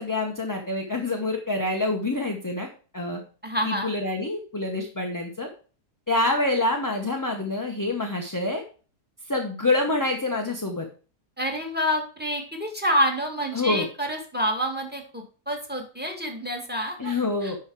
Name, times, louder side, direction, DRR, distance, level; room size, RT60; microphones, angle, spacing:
voice 1, 0.0-2.7 2.9-3.2 3.6-5.5 6.1-8.6 9.2-10.9 13.5-13.9 17.0-17.6, left 2 dB, 15° left, 2 dB, 0.9 m, -26 dB
voice 2, 3.4-3.9 11.4-17.1 17.4-17.5, equal, 5° right, 4 dB, 2.0 m, -28 dB
11.0 x 4.6 x 4.6 m, 0.38 s
omnidirectional pair, 1.7 m